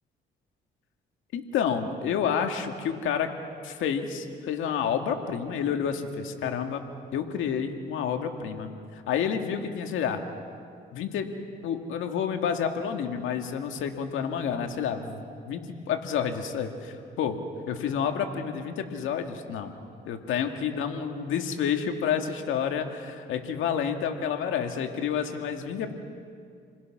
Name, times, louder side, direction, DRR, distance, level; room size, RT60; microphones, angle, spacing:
voice 1, 1.3-3.3 3.6-6.9 7.1-10.2 10.9-11.3 11.6-17.4 17.7-19.7 20.1-25.9, left 7 dB, 85° left, 5 dB, 2.0 m, -29 dB
29.5 x 21.0 x 6.1 m, 2.2 s
cardioid pair, 90°, 20 cm